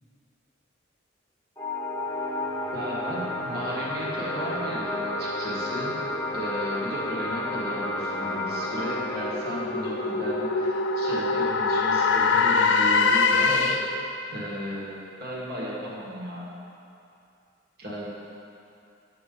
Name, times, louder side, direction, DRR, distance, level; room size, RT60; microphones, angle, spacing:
sound 1, 1.6-12.6, left 1 dB, 15° left, 0.9 m, -32 dB
voice 1, 2.7-6.0 6.3-16.5 17.8-18.1, equal, 55° right, -5 dB, 1.7 m, -35 dB
sound 2, 8.0-14.0, left 4 dB, 70° left, 0.5 m, -24 dB
8.2 x 7.9 x 3.8 m, 2.6 s
head